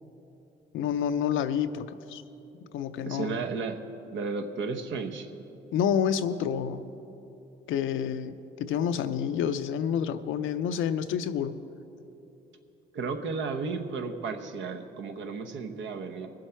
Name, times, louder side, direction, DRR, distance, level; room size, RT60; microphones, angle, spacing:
voice 1, 0.7-2.2 2.7-3.4 5.7-6.8 7.7-11.5, left 8 dB, 80° left, 11 dB, 0.6 m, -28 dB
voice 2, 3.0-3.8 4.1-5.3 12.9-16.3, right 4 dB, 70° right, 5 dB, 1.0 m, -33 dB
20.5 x 7.6 x 4.4 m, 3.0 s
cardioid pair, 90°, 20 cm